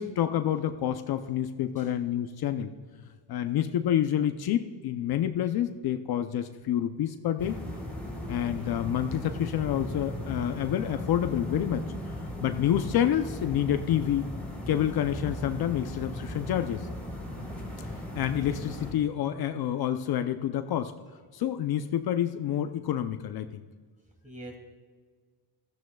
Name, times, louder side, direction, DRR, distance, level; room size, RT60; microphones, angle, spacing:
voice 1, 0.0-2.7 3.0-7.6 8.3-14.3 14.7-16.9 18.2-20.9 21.3-23.6, left 10 dB, 60° left, 9 dB, 0.6 m, -28 dB
sound 1, 7.4-18.9, left 1 dB, 5° left, 3.7 m, -37 dB
voice 2, 24.2-24.6, right 1 dB, 15° right, 2 dB, 2.5 m, -45 dB
17.0 x 14.0 x 2.3 m, 1.5 s
cardioid pair, 110°, 43 cm